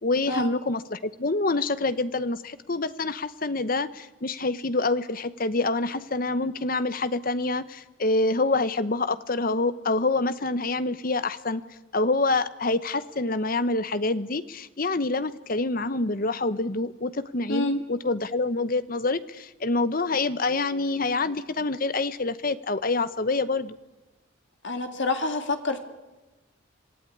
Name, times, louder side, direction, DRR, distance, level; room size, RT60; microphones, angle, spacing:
voice 1, 0.0-11.6 11.9-23.8, left 3 dB, 45° left, 14 dB, 0.9 m, -26 dB
voice 2, 24.6-25.8, left 2 dB, 60° left, 6 dB, 2.3 m, -27 dB
26.0 x 15.0 x 9.6 m, 1.1 s
head